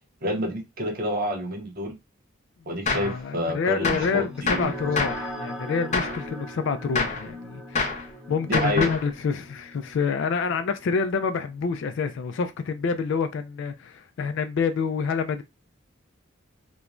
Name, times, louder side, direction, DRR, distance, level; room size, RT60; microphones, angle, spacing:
voice 1, 0.2-2.0 2.7-4.7 8.5-8.9, equal, 45° right, 0.7 m, -28 dB
voice 2, 2.9-15.4, left 5 dB, 65° left, 0.3 m, -27 dB
Gunshot gunfire, 2.9-3.2 3.8-4.1 4.5-5.3 5.9-6.2 6.9-7.3 7.8-8.1 8.5-9.1, left 4 dB, 35° left, 0.7 m, -27 dB
sound 1, 4.0-12.9, equal, 5° right, 0.6 m, -40 dB
3.0 x 2.1 x 2.4 m
head